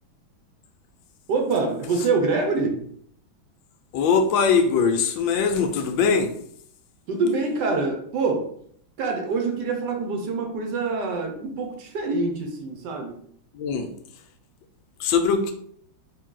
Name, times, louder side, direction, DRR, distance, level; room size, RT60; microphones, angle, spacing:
voice 1, 1.3-2.8 7.1-8.5 9.0-13.2, right 3 dB, 65° right, 3 dB, 1.2 m, -25 dB
voice 2, 3.9-6.3 13.5-13.9 15.0-15.5, left 5 dB, 75° left, 6 dB, 1.2 m, -21 dB
3.8 x 2.7 x 3.7 m, 0.64 s
omnidirectional pair, 2.2 m